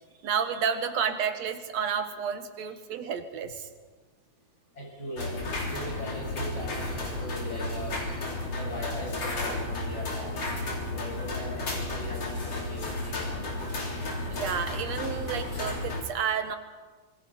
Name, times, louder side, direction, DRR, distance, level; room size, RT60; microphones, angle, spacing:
voice 1, 0.2-3.7 14.3-16.6, right 7 dB, 65° right, 8 dB, 2.4 m, -30 dB
voice 2, 4.7-5.4 5.7-8.1 8.4-10.5 10.9-13.7, left 1 dB, 30° left, -3 dB, 8.5 m, -39 dB
sound 1, 5.2-16.0, left 2 dB, 50° left, 4.7 m, -33 dB
26.0 x 21.5 x 5.6 m, 1.4 s
omnidirectional pair, 3.5 m